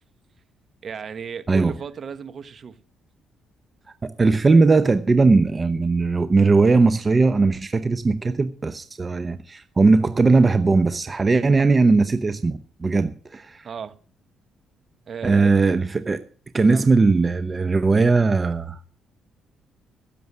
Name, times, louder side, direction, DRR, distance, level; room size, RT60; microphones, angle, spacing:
voice 1, 0.8-2.8 13.6-14.0 15.1-15.5 16.7-16.8, right 6 dB, 50° right, 1.2 m, -34 dB
voice 2, 4.0-13.7 15.2-16.2 16.5-18.8, right 3 dB, 30° right, 0.9 m, -19 dB
16.0 x 7.0 x 7.3 m
supercardioid pair, 70°, 0 cm